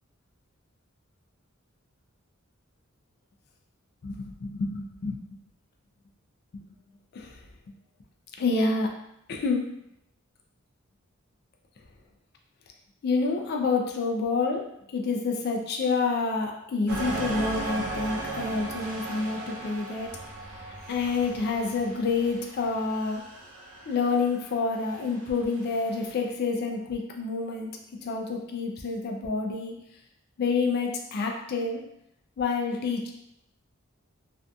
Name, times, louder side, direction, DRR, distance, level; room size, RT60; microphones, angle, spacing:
voice 1, 4.0-5.2 6.5-6.6 7.1-7.4 8.4-8.9 9.3-9.6 13.0-14.7 14.9-20.1 20.6-23.2 23.9-27.7 28.0-29.7 30.4-31.8 32.4-33.1, left 4 dB, 50° left, 1 dB, 0.3 m, -28 dB
sound 1, 16.9-26.1, right 2 dB, 75° right, 0.7 m, -37 dB
2.6 x 2.5 x 2.2 m, 0.80 s
head